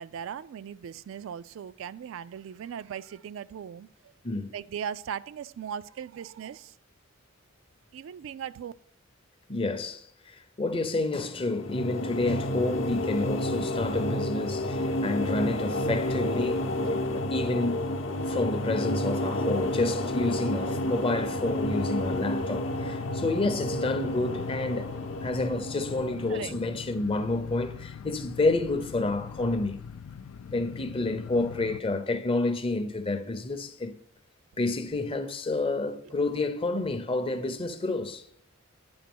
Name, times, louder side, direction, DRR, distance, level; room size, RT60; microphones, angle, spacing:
voice 1, 0.0-3.9 4.5-6.7 7.9-8.7 26.3-26.5, right 8 dB, 70° right, 0.3 m, -38 dB
voice 2, 9.5-16.7 17.1-17.9 18.3-29.8 30.5-33.9 34.6-38.2, left 2 dB, 25° left, 0.6 m, -29 dB
sound 1, 11.3-26.7, left 1 dB, 65° left, 0.7 m, -30 dB
sound 2, 20.6-31.8, left 7 dB, 85° left, 0.4 m, -42 dB
9.5 x 3.7 x 6.0 m
head